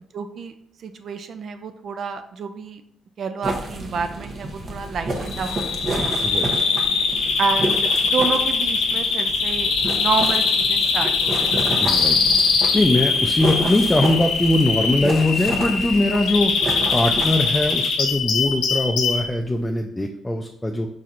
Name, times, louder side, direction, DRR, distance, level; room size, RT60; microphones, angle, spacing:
voice 1, 0.1-0.5 0.8-2.8 3.2-6.1 7.4-11.8, right 5 dB, 60° right, 8 dB, 0.4 m, -29 dB
sound 1, 3.4-17.7, right 2 dB, 45° right, 0.8 m, -30 dB
Bird vocalization bird call bird song, 5.3-19.3, left 4 dB, 85° left, 0.6 m, -22 dB
voice 2, 11.8-12.2 12.7-16.5 16.9-20.9, left 1 dB, 10° left, 3 dB, 0.4 m, -21 dB
4.2 x 4.1 x 2.5 m, 0.71 s
cardioid pair, 90°, 0 cm